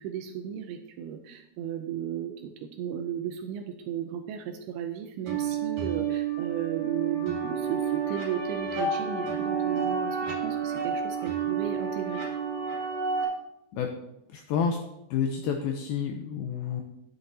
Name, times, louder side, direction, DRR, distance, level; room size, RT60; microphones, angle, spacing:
voice 1, 0.0-12.2, right 9 dB, 80° right, 6 dB, 2.4 m, -35 dB
sound 1, 5.3-13.2, right 6 dB, 50° right, 3.8 m, -30 dB
voice 2, 14.3-14.8 15.1-16.8, left 7 dB, 85° left, 4 dB, 2.1 m, -29 dB
10.5 x 9.6 x 2.7 m, 0.84 s
omnidirectional pair, 4.9 m